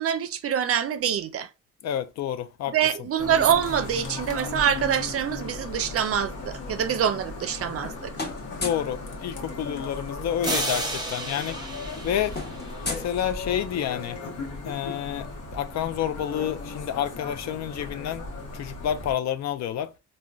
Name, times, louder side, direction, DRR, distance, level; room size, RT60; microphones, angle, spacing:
voice 1, 0.0-1.5 2.7-8.1, right 8 dB, 50° right, 0.5 m, -25 dB
voice 2, 1.8-2.8 8.5-11.6 12.0-12.4 12.9-14.2 14.6-15.3 15.5-18.3 18.5-19.9, left 10 dB, 60° left, 0.5 m, -29 dB
sound 1, 3.2-19.1, left 3 dB, 80° left, 0.9 m, -37 dB
sound 2, 7.1-7.9 8.1-9.0 10.3-10.4 10.7-10.9 11.2-13.8, left 3 dB, 35° left, 0.9 m, -37 dB
sound 3, 10.4-13.1, right 2 dB, 15° right, 0.7 m, -32 dB
3.6 x 2.2 x 2.2 m
cardioid pair, 90°, 30 cm